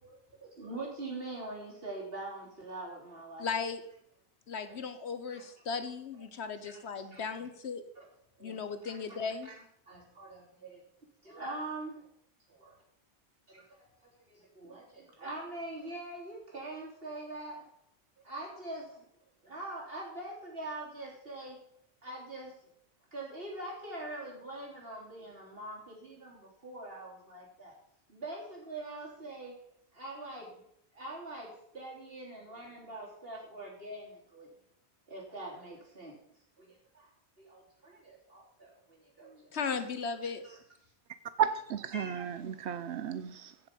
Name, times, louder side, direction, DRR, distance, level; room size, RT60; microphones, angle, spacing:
voice 1, 0.0-3.5 4.6-4.8 5.3-5.5 6.6-7.3 8.0-8.1 8.4-9.0 9.4-9.5 9.9-10.8 11.2-12.1 12.5-12.8 13.5-17.6 18.2-19.1 19.4-21.6 22.0-22.5 23.1-27.7 28.1-29.5 29.9-30.6 30.9-34.6 35.1-36.2 36.6-37.1 37.4-39.8 40.4-40.6 41.9-42.4, right 2 dB, 60° right, 3.8 m, -44 dB
voice 2, 3.4-3.8 4.5-7.8 8.4-9.5 39.5-40.4, left 5 dB, 75° left, 1.4 m, -36 dB
voice 3, 41.4-43.7, right 8 dB, 85° right, 1.0 m, -33 dB
16.0 x 6.9 x 5.4 m
omnidirectional pair, 1.1 m